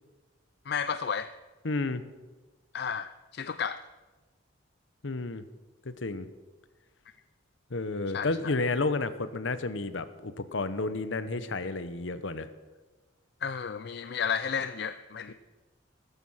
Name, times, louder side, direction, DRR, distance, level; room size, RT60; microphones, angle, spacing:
voice 1, 0.7-1.3 2.7-3.8 8.1-8.5 13.4-15.3, left 6 dB, 55° left, 12 dB, 0.4 m, -32 dB
voice 2, 1.6-2.0 5.0-5.4 5.8-6.3 7.7-12.5 15.3-15.4, left 3 dB, 70° left, 12 dB, 0.9 m, -31 dB
15.5 x 14.0 x 5.7 m, 1.3 s
head